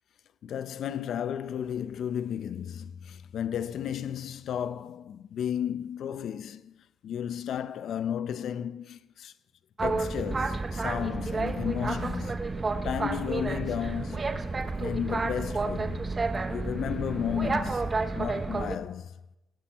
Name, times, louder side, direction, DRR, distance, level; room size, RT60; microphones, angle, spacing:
voice 1, 0.4-9.3 9.8-12.4 12.8-14.4 14.8-16.1 16.5-19.1, left 9 dB, 70° left, 0.6 m, -33 dB
Boat Water vehicle, 9.8-18.8, right 3 dB, 30° right, 0.9 m, -30 dB
16.5 x 8.6 x 5.6 m
cardioid pair, 90°, 0 cm